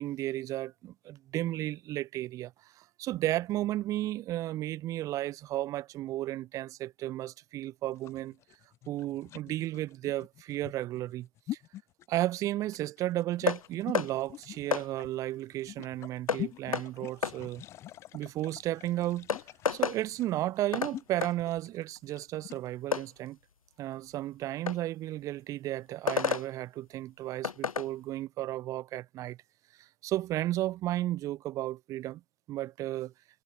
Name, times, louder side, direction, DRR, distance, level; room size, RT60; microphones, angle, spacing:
voice 1, 0.0-8.4 8.9-11.3 12.1-17.6 18.1-19.3 19.7-23.4 23.8-29.4 29.8-32.2 32.5-33.1, right 15 dB, 20° right, 1.9 m, -33 dB
sound 1, 7.9-22.7, left 13 dB, 15° left, 1.0 m, -45 dB
sound 2, 13.5-13.6 13.9-14.1 14.7-14.9 16.3-16.4 16.7-16.9 17.2-17.4 18.7-18.8 19.3-20.0 20.7-20.9 21.2-21.3 22.9-23.1 24.7-24.8 26.1-26.5 27.4-27.9, left 6 dB, 80° left, 0.8 m, -29 dB
hypercardioid pair, 140°, 18 cm